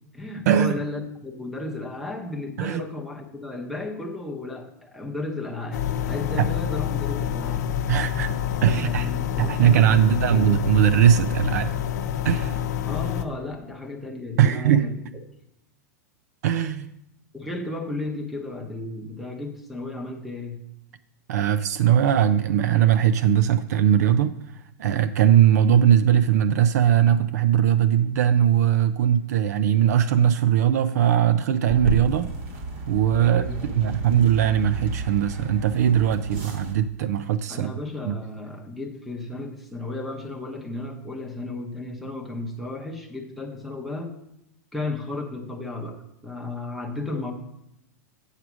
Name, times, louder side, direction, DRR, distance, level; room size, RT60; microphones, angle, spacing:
voice 1, 0.1-7.7 8.6-10.6 12.8-14.9 17.3-20.6 33.2-33.8 37.5-44.1 44.7-46.0 46.2-47.3, left 2 dB, ahead, 4 dB, 0.8 m, -34 dB
sound 1, 5.7-13.2, left 10 dB, 75° left, 0.7 m, -27 dB
voice 2, 7.9-9.1 9.4-11.7 12.2-12.6 14.4-14.9 16.4-16.9 21.3-24.4 24.8-32.3 32.9-33.5 33.8-37.7 38.0-38.2, right 10 dB, 70° right, 12 dB, 0.4 m, -20 dB
sound 2, 31.7-36.7, right 2 dB, 45° right, 1.3 m, -32 dB
8.1 x 4.8 x 6.1 m, 0.82 s
supercardioid pair, 170°, 9 cm